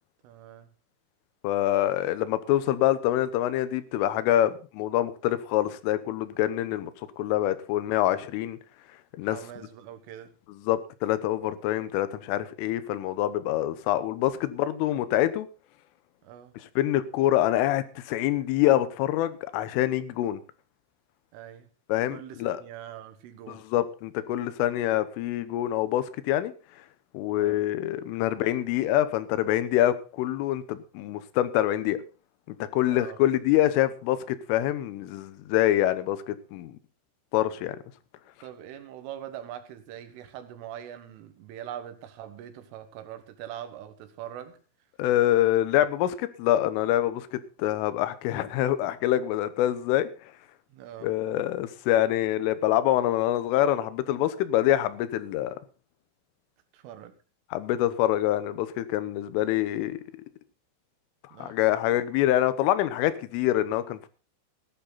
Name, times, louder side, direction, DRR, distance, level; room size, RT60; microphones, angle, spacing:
voice 1, 0.2-0.7 9.3-10.3 16.2-16.5 21.3-21.7 22.1-23.7 27.3-27.6 32.9-33.2 38.4-44.6 50.7-51.1 56.7-57.1 61.3-61.8, right 11 dB, 85° right, 4.0 m, -42 dB
voice 2, 1.4-6.9 7.2-8.6 9.2-9.4 10.5-15.5 16.8-20.4 21.9-22.6 23.5-26.5 27.1-32.0 32.5-36.7 37.3-37.8 45.0-50.1 51.0-55.6 57.5-60.0 61.4-64.1, left 13 dB, 85° left, 3.5 m, -25 dB
16.0 x 11.5 x 4.1 m
omnidirectional pair, 5.6 m